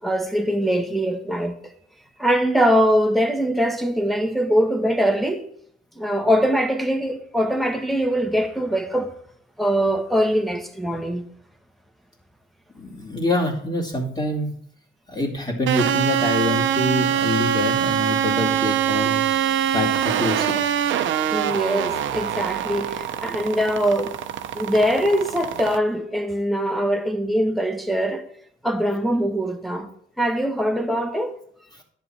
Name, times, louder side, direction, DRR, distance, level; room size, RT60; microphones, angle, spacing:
voice 1, 0.0-1.5 2.2-5.4 5.9-9.1 9.6-11.2 21.3-24.2 24.5-28.3 28.6-29.9 30.2-31.3, equal, ahead, 1.4 m, -22 dB
voice 2, 12.7-14.6 15.1-19.2 19.7-20.8, left 2 dB, 30° left, 2.7 m, -26 dB
sound 1, 15.7-25.8, right 9 dB, 70° right, 0.8 m, -24 dB
10.5 x 8.7 x 4.4 m
cardioid pair, 90°, 20 cm